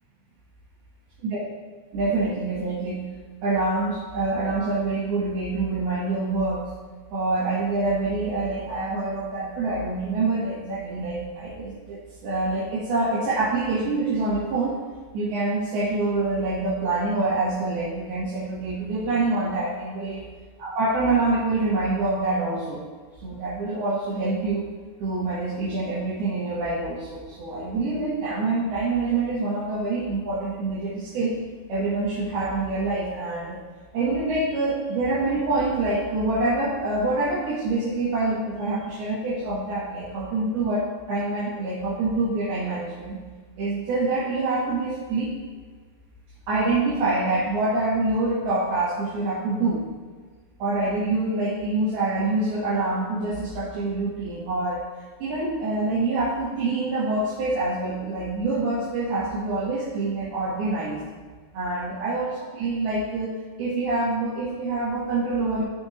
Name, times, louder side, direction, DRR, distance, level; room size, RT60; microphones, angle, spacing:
voice 1, 1.9-3.1 3.4-6.7 7.1-14.7 15.1-20.2 20.6-22.8 23.2-24.7 25.0-31.3 31.7-33.6 33.9-43.2 43.6-45.3 46.5-49.9 50.6-54.9 55.2-61.0 61.5-63.3 63.6-65.6, right 2 dB, 65° right, -9 dB, 3.3 m, -26 dB
15.5 x 5.9 x 2.7 m, 1.5 s
omnidirectional pair, 5.5 m